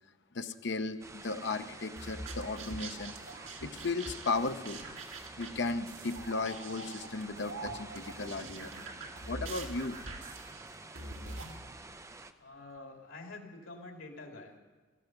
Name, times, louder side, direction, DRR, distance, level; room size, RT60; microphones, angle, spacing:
voice 1, 0.3-3.1 3.6-4.8 5.4-8.7 9.2-10.0, left 3 dB, 60° left, 8 dB, 0.8 m, -35 dB
sound 1, 1.0-12.3, right 2 dB, 15° right, 0.5 m, -49 dB
sound 2, 2.0-11.6, right 2 dB, 80° right, 1.9 m, -44 dB
voice 2, 12.4-14.5, left 2 dB, 90° left, 2 dB, 2.6 m, -47 dB
16.0 x 14.5 x 6.0 m, 1.4 s
head